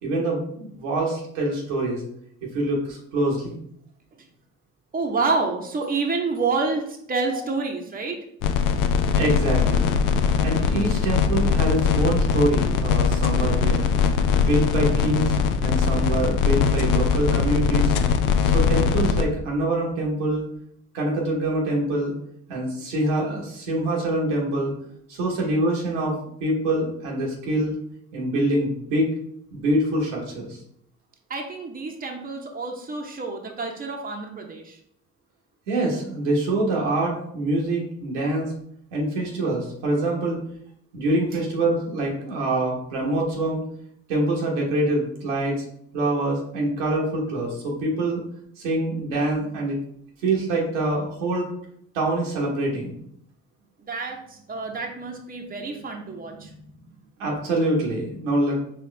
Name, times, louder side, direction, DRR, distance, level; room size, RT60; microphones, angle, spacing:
voice 1, 0.0-2.0 2.5-3.6 9.2-9.9 10.4-13.8 14.3-17.9 18.4-20.4 20.9-22.1 22.5-24.7 25.1-27.7 28.1-29.1 29.5-30.6 35.7-38.5 38.9-40.4 40.9-43.6 44.1-45.6 45.9-48.2 48.6-49.8 50.2-51.5 51.9-53.0 57.2-58.6, right 1 dB, 85° right, -2 dB, 1.2 m, -25 dB
voice 2, 4.9-8.3 31.3-34.8 53.8-57.0, right 4 dB, 25° right, 2 dB, 0.9 m, -28 dB
sound 1, 8.4-19.3, left 6 dB, 65° left, 0.5 m, -21 dB
4.4 x 3.0 x 3.3 m, 0.70 s
hypercardioid pair, 60°, 35 cm